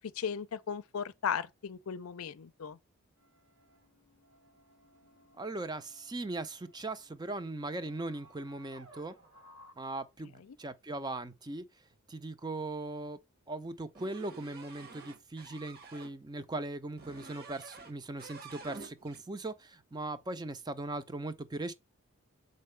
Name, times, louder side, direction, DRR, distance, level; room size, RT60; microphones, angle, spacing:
voice 1, 0.2-2.8, left 7 dB, 80° left, 0.5 m, -36 dB
sound 1, 3.2-9.7, equal, 75° right, 3.6 m, -60 dB
voice 2, 5.4-9.2 9.8-11.6 12.1-13.2 13.5-21.7, right 2 dB, 20° right, 0.5 m, -39 dB
sound 2, 13.9-16.1 17.0-17.9 18.2-19.2, right 4 dB, 45° right, 1.1 m, -49 dB
6.6 x 4.6 x 3.2 m
head